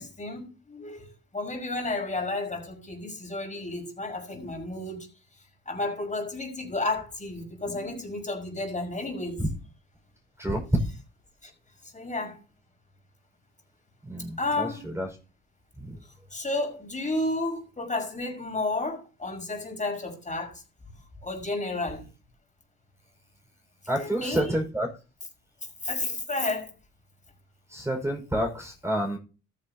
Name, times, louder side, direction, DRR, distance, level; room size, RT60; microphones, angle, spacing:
voice 1, 0.0-5.0 5.7-9.4 11.4-11.5 11.9-12.4 14.4-14.9 16.3-20.6 21.2-22.0 23.9-24.6 25.8-26.7, left 2 dB, 25° left, 5.7 m, -32 dB
voice 2, 14.1-15.1 15.8-16.0 23.9-24.9 27.7-29.2, equal, 10° right, 5.5 m, -29 dB
13.5 x 10.0 x 2.9 m
cardioid pair, 90°, 30 cm